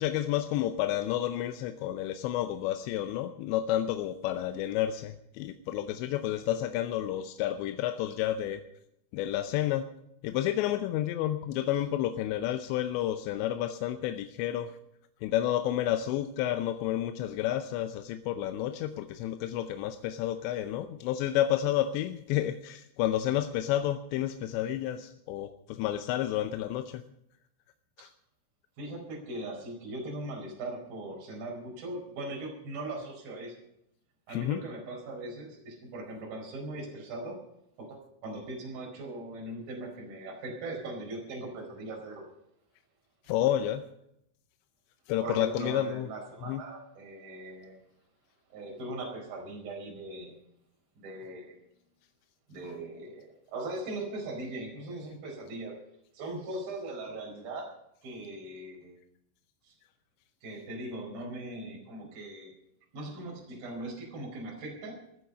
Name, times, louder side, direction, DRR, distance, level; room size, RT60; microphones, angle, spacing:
voice 1, 0.0-8.6 9.1-9.9 10.2-14.7 15.2-27.0 28.0-28.1 34.3-34.6 43.3-43.9 45.1-46.1 46.5-46.6, left 12 dB, 80° left, 8 dB, 2.8 m, -30 dB
voice 2, 28.8-33.6 34.3-37.4 37.8-42.2 45.2-47.8 48.5-50.4 51.0-51.6 52.5-55.8 56.1-57.7 58.0-59.0 59.6-59.7 60.4-62.5 62.9-65.0, right 2 dB, 50° right, 0 dB, 6.1 m, -40 dB
14.5 x 14.5 x 5.6 m, 0.78 s
omnidirectional pair, 5.5 m